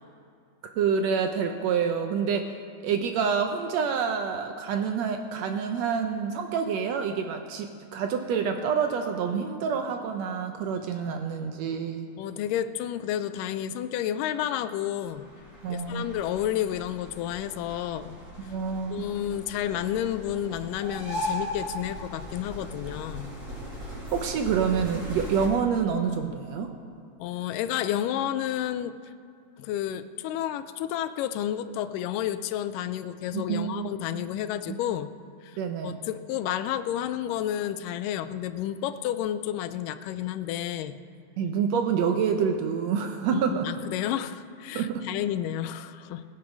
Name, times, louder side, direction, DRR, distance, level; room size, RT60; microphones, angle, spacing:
voice 1, 0.6-2.5 2.8-12.1 15.6-16.1 18.4-19.0 24.1-26.7 33.3-33.9 35.6-36.0 41.4-43.7 44.7-45.1, right 6 dB, 80° right, 5 dB, 1.5 m, -27 dB
voice 2, 12.2-15.3 15.7-18.5 18.9-23.3 27.2-29.1 29.6-35.1 35.4-35.6 35.8-41.0 43.3-46.3, left 11 dB, 85° left, 12 dB, 2.2 m, -31 dB
sound 1, 15.0-25.5, equal, 25° right, 2.7 m, -38 dB
20.5 x 6.9 x 5.3 m, 2.4 s
omnidirectional pair, 3.8 m